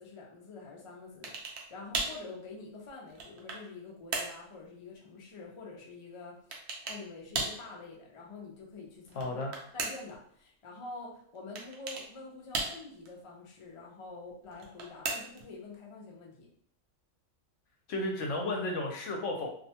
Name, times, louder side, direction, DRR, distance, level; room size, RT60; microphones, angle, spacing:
voice 1, 0.0-9.4 9.7-16.5, left 3 dB, 55° left, -2 dB, 0.3 m, -47 dB
sound 1, 1.2-1.7 1.9-2.2 2.9-3.7 4.1-4.4 6.5-7.0 7.3-7.6 9.0-10.2 11.5-12.1 12.5-13.1 14.5-15.5, right 3 dB, 65° right, 0.8 m, -36 dB
voice 2, 9.2-9.5 17.9-19.5, left 2 dB, 70° left, 1 dB, 0.9 m, -33 dB
2.6 x 2.1 x 2.8 m, 0.63 s
omnidirectional pair, 1.4 m